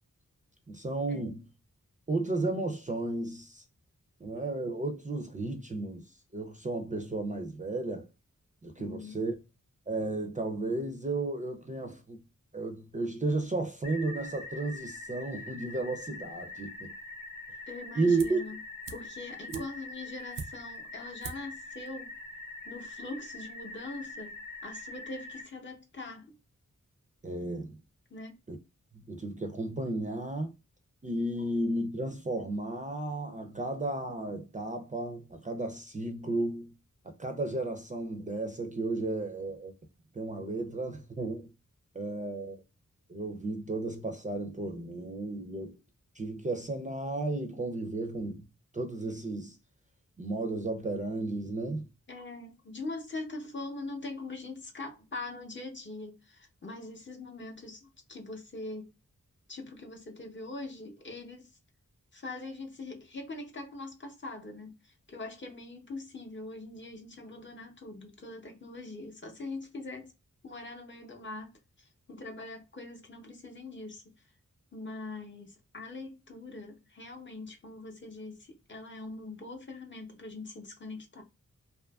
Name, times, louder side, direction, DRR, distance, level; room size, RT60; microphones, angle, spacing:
voice 1, 0.7-1.4 2.1-3.6 4.2-8.1 8.6-9.4 9.9-12.2 12.5-16.9 18.0-18.4 19.5-19.6 27.2-27.8 28.5-28.6 28.9-30.5 31.0-36.7 37.0-39.7 40.1-41.5 41.9-42.6 43.1-45.8 46.2-48.5 48.7-49.6 50.2-51.9, right 2 dB, 25° right, 0.4 m, -33 dB
voice 2, 8.8-9.2 17.7-18.6 18.9-22.1 22.6-26.4 28.1-28.4 52.1-58.9 59.5-61.6 62.1-70.1 70.4-74.0 74.7-81.2, left 2 dB, 40° left, 0.6 m, -42 dB
sound 1, 13.8-25.4, left 2 dB, 75° left, 0.7 m, -44 dB
sound 2, 18.2-18.5 18.8-20.8 21.2-21.6 21.9-22.0, right 5 dB, 85° right, 0.5 m, -43 dB
2.5 x 2.4 x 2.2 m
wide cardioid pair, 65°, 31 cm